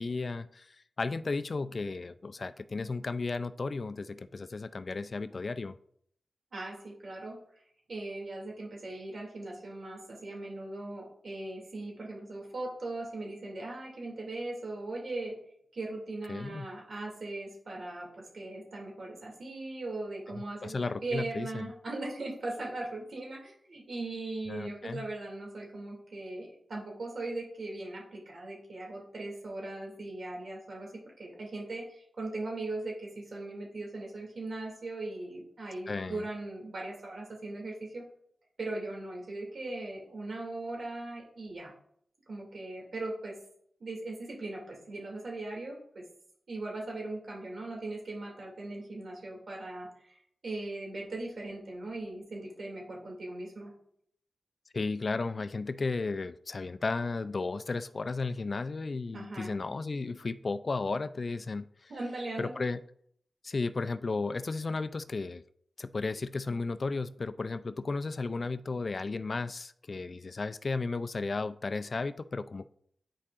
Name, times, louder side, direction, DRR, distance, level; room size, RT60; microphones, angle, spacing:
voice 1, 0.0-5.7 16.3-16.7 20.4-21.7 24.5-25.0 35.9-36.2 54.7-61.9 62.4-62.8 63.4-65.4 65.8-72.7, left 3 dB, 50° left, 12 dB, 0.3 m, -34 dB
voice 2, 6.5-7.4 7.9-15.4 15.7-30.9 31.2-38.0 38.6-41.7 42.3-43.3 43.8-46.0 46.5-50.2 50.4-53.7 59.1-59.5 61.9-62.6, right 2 dB, 70° right, -1 dB, 2.5 m, -39 dB
10.0 x 4.7 x 2.5 m, 0.67 s
cardioid pair, 65°, 0 cm